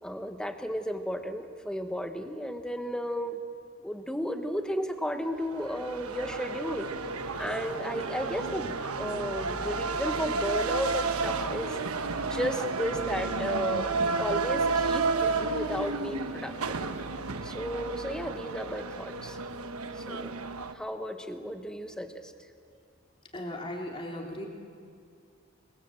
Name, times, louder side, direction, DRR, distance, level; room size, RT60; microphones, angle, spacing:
voice 1, 0.0-3.4 3.8-6.9 7.4-11.8 12.2-16.8 17.4-19.4 19.9-20.4 20.7-22.3, equal, 5° left, 6 dB, 1.2 m, -34 dB
sound 1, 5.4-20.7, right 4 dB, 90° right, 1.1 m, -32 dB
sound 2, 6.2-18.3, equal, 30° right, 2.5 m, -44 dB
voice 2, 23.2-24.5, left 1 dB, 25° left, 0 dB, 3.1 m, -38 dB
28.5 x 22.0 x 7.6 m, 2.3 s
head